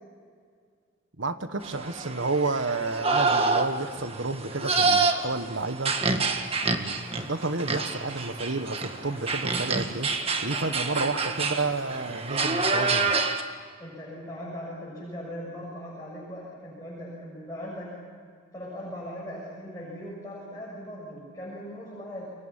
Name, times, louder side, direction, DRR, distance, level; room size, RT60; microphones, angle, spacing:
voice 1, 1.2-5.9 6.7-7.0 7.3-10.1 10.4-13.1, right 3 dB, 70° right, 10 dB, 1.4 m, -30 dB
sound 1, 1.6-13.4, right 3 dB, 30° right, 1.7 m, -27 dB
sound 2, 6.9-12.6, equal, 10° right, 7.6 m, -49 dB
voice 2, 10.5-11.1 13.8-18.0 18.5-22.3, equal, 15° left, -5 dB, 7.1 m, -39 dB
29.5 x 23.0 x 7.3 m, 2.1 s
head